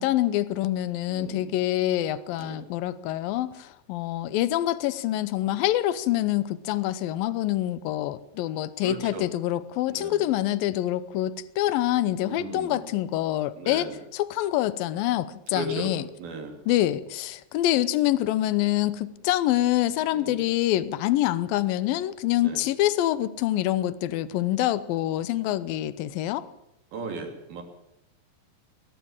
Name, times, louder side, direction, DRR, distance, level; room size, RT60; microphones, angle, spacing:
voice 1, 0.0-13.9 14.1-16.0 16.7-26.5, left 14 dB, 75° left, 16 dB, 2.4 m, -26 dB
voice 2, 1.1-1.6 2.4-2.6 8.8-9.3 9.9-10.3 12.2-12.9 13.6-14.0 15.5-15.9 16.2-16.6 20.1-20.5 22.4-22.6 26.9-27.6, right 3 dB, 65° right, 4 dB, 4.9 m, -36 dB
21.0 x 18.5 x 7.4 m, 0.83 s
omnidirectional pair, 4.6 m